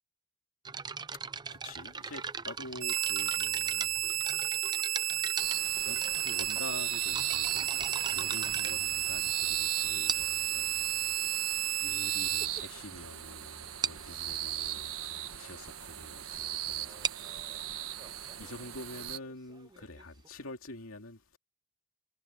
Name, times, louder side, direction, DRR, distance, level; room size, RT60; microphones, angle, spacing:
sound 1, 0.6-9.5 10.1-10.5 11.3-11.4 12.0-12.1 12.4-12.6 12.9-13.0 13.3-13.4 13.8-14.1 16.8-20.3, right 6 dB, 20° right, 0.5 m, -39 dB
voice 1, 1.5-4.2 4.7-6.0 6.2-17.8 18.1-21.4, left 2 dB, 80° left, 2.7 m, -47 dB
sound 2, 2.8-12.5, right 13 dB, 40° right, 2.7 m, -32 dB
sound 3, 5.3-19.2, right 12 dB, 80° right, 1.4 m, -39 dB
head